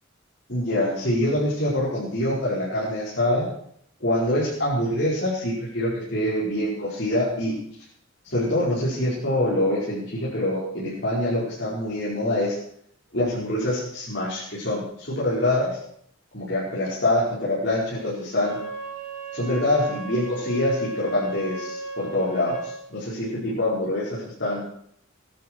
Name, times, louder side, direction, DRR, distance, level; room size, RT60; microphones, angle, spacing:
voice 1, 0.5-3.5 4.0-7.5 8.2-12.6 13.1-15.8 16.3-18.6 19.3-24.6, left 1 dB, 55° left, -8 dB, 5.3 m, -25 dB
Wind instrument woodwind instrument, 18.3-22.8, right 3 dB, 70° right, 4.3 m, -35 dB
20.5 x 12.0 x 4.8 m, 0.66 s
head